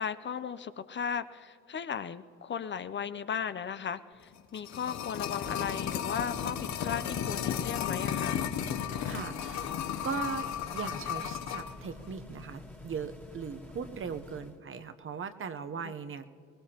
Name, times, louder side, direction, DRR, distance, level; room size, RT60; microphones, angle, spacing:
voice 1, 0.0-8.4, left 7 dB, 40° left, 12 dB, 0.5 m, -36 dB
sound 1, 4.3-11.7 12.0-12.1, left 9 dB, 65° left, 0.8 m, -34 dB
sound 2, 5.2-14.6, left 2 dB, 5° left, 1.6 m, -48 dB
voice 2, 8.7-16.3, right 6 dB, 45° right, 9 dB, 0.8 m, -39 dB
22.5 x 19.5 x 2.9 m, 2.3 s
cardioid pair, 90°, 30 cm